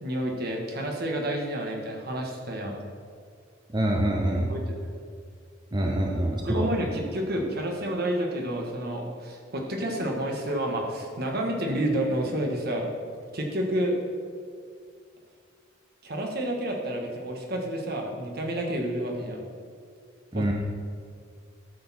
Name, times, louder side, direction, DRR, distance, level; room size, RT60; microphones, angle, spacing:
voice 1, 0.0-2.8 4.5-4.8 5.8-5.9 6.4-12.9 13.3-14.0 16.0-19.4 20.3-20.5, right 1 dB, 55° right, 1 dB, 1.5 m, -29 dB
voice 2, 3.7-4.5 5.7-6.7 20.3-20.5, right 1 dB, 25° right, 0 dB, 0.7 m, -25 dB
12.5 x 6.7 x 4.3 m, 2.2 s
head